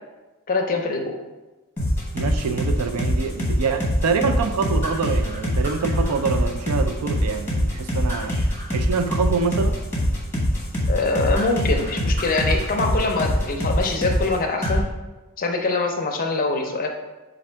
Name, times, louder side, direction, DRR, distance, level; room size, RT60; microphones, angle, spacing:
voice 1, 0.5-1.2 10.9-14.8 15.4-16.9, left 3 dB, 40° left, 3 dB, 0.5 m, -23 dB
sound 1, 1.8-14.3 14.6-14.8, equal, 10° left, 1.0 m, -23 dB
voice 2, 2.1-8.4 8.7-9.8, right 5 dB, 80° right, 7 dB, 0.4 m, -25 dB
4.2 x 2.5 x 4.4 m, 1.1 s
head